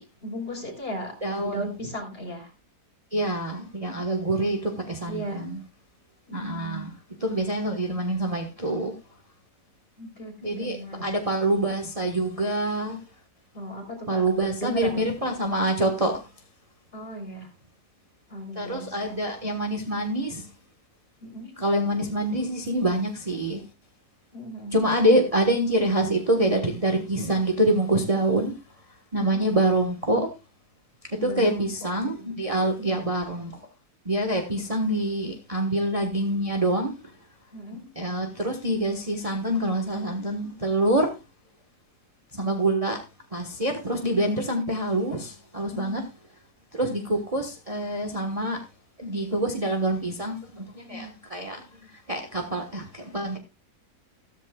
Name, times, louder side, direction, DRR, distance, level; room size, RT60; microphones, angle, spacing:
voice 1, 0.0-1.1 1.5-2.5 5.1-5.4 6.3-6.9 10.0-11.1 13.5-15.1 16.9-17.5 18.3-19.1 21.2-21.5 24.3-24.7 29.2-29.4 31.2-31.7 32.8-33.1 37.5-37.9 45.7-46.0 50.9-51.2, equal, 35° left, 4.1 m, -36 dB
voice 2, 1.2-1.6 3.1-5.6 6.3-6.9 7.2-8.9 10.4-13.0 14.1-16.2 18.5-20.5 21.6-23.6 24.7-28.5 29.1-30.3 31.1-33.5 34.0-36.9 37.9-41.1 42.3-43.0 43.3-46.1 46.7-48.6 49.0-53.4, right 1 dB, 25° right, 1.4 m, -26 dB
14.0 x 14.0 x 2.4 m
omnidirectional pair, 1.7 m